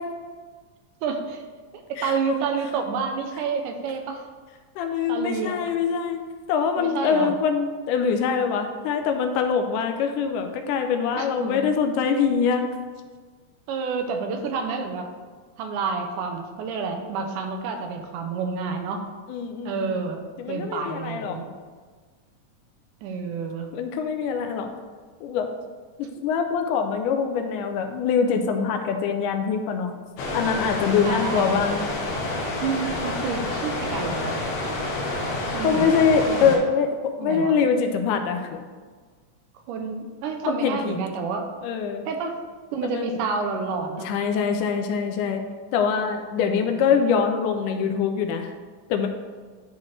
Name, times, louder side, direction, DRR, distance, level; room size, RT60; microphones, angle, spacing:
voice 1, 1.0-1.4 1.7-4.3 5.1-5.6 6.8-7.3 11.2-11.6 13.7-15.1 15.6-19.1 19.7-20.2 20.5-21.5 23.0-23.7 31.0-31.5 32.6-34.5 35.4-35.9 36.3-36.6 37.2-37.6 39.7-41.5 42.1-42.3 42.7-44.1 46.4-46.9, right 5 dB, 80° right, 4 dB, 2.2 m, -29 dB
voice 2, 2.0-2.4 4.8-6.2 6.5-12.6 19.3-20.0 20.4-21.4 23.7-24.7 25.2-25.5 26.0-29.9 30.3-31.9 35.6-38.6 40.5-41.0 41.6-42.1 42.8-43.2 44.0-45.4 45.7-48.5 48.9-49.1, left 6 dB, 80° left, 6 dB, 2.0 m, -24 dB
sound 1, 30.2-36.6, left 2 dB, 65° left, 1.7 m, -28 dB
11.5 x 4.2 x 3.2 m, 1.5 s
omnidirectional pair, 3.8 m